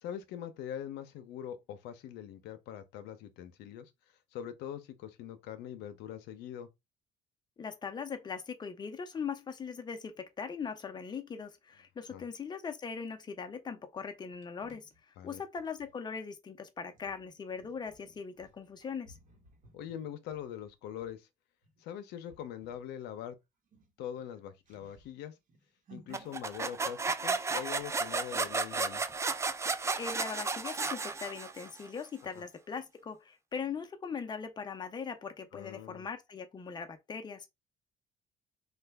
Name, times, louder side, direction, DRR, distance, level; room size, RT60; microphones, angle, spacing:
voice 1, 0.0-3.9 4.3-6.7 12.1-12.2 15.2-15.4 19.7-21.3 21.8-23.4 24.0-25.3 25.9-29.0 32.3-32.4 35.5-36.1, left 9 dB, 85° left, 0.6 m, -43 dB
voice 2, 7.6-14.9 15.2-19.2 30.0-37.5, left 6 dB, 25° left, 0.6 m, -40 dB
sound 1, 14.0-15.9 16.9-21.1 21.6-21.9 22.2-22.9 23.2-23.3 23.6-26.6, right 2 dB, 50° right, 1.1 m, -60 dB
sound 2, 26.1-31.8, right 4 dB, 15° right, 0.3 m, -33 dB
3.2 x 2.2 x 3.3 m
cardioid pair, 110°, 17 cm